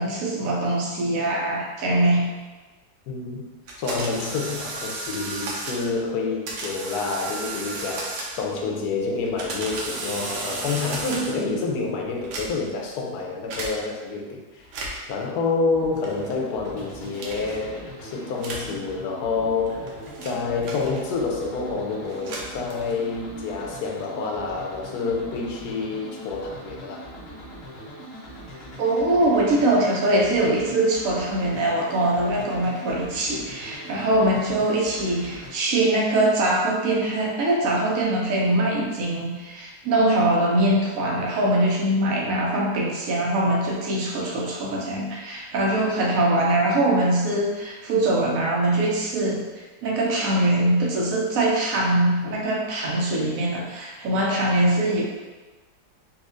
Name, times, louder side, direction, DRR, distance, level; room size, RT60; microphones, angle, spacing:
voice 1, 0.0-2.3 28.8-55.0, right 1 dB, 65° right, -2 dB, 0.9 m, -22 dB
voice 2, 3.1-3.5 3.8-14.7 15.1-20.0 20.2-27.0, left 4 dB, 75° left, 0 dB, 1.1 m, -28 dB
sound 1, 3.7-5.9 6.5-8.6 9.2-11.5 12.2-12.8 13.5-13.7 14.6-15.1 16.0-16.4 17.2-17.6 18.4-18.7 19.5-21.3 22.0-23.1, right 2 dB, 90° right, 1.3 m, -34 dB
sound 2, 15.7-35.5, equal, 55° left, 0.8 m, -41 dB
4.1 x 2.5 x 2.5 m, 1.2 s
omnidirectional pair, 1.7 m